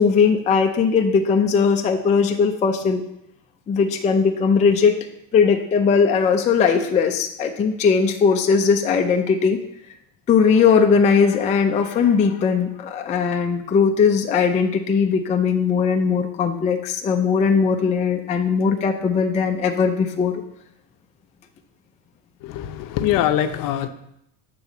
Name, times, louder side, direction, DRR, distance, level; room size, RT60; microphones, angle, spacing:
voice 1, 0.0-3.0 3.7-5.0 5.3-9.6 10.3-20.4, left 6 dB, 20° left, 3 dB, 0.4 m, -19 dB
voice 2, 22.4-23.9, left 11 dB, 55° left, 8 dB, 0.7 m, -22 dB
8.1 x 3.8 x 6.0 m, 0.78 s
cardioid pair, 150°, 39 cm